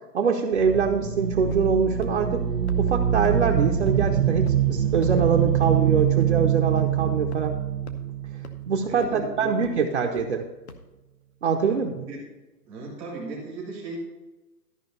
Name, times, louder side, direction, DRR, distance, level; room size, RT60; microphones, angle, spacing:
voice 1, 0.1-2.4 2.8-7.6 8.7-10.5 11.4-12.1, right 5 dB, 45° right, 1 dB, 0.7 m, -24 dB
sound 1, 0.5-9.2, right 9 dB, 85° right, 1.4 m, -24 dB
sound 2, 1.5-1.8 2.0-2.1 2.7-2.8 3.2-3.3 3.9-4.0 4.5-4.6 5.0-5.2 5.6-5.7 6.2-6.3 6.8-6.9 7.3-7.4 7.9-8.0 8.4-8.5 9.0-9.2 9.6-9.7 10.2-10.3 10.7-10.8, left 3 dB, 40° left, 0.8 m, -41 dB
voice 2, 8.8-9.8 11.6-12.2 12.7-14.0, right 3 dB, 5° right, -4 dB, 0.8 m, -37 dB
13.0 x 5.1 x 5.2 m, 1.1 s
hypercardioid pair, 165°, 50 cm